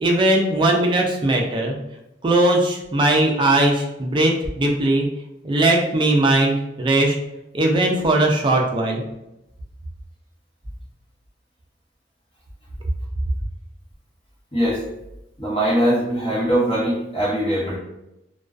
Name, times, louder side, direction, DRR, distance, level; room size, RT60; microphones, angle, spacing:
voice 1, 0.0-1.8 2.2-5.1 5.4-7.2 7.5-9.0, right 1 dB, 25° right, 1 dB, 0.3 m, -19 dB
voice 2, 14.5-14.8 15.4-17.8, equal, 30° left, -6 dB, 0.8 m, -21 dB
2.3 x 2.2 x 2.4 m, 0.90 s
head